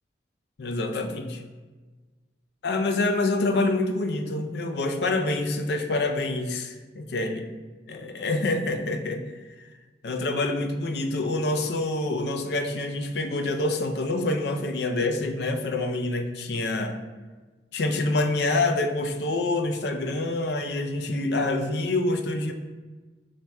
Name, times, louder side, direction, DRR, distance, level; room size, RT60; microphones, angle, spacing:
voice 1, 0.6-1.4 2.6-7.4 7.9-9.2 10.0-17.0 17.7-22.5, left 2 dB, 65° left, 6 dB, 0.4 m, -26 dB
5.7 x 3.0 x 2.2 m, 1.3 s
head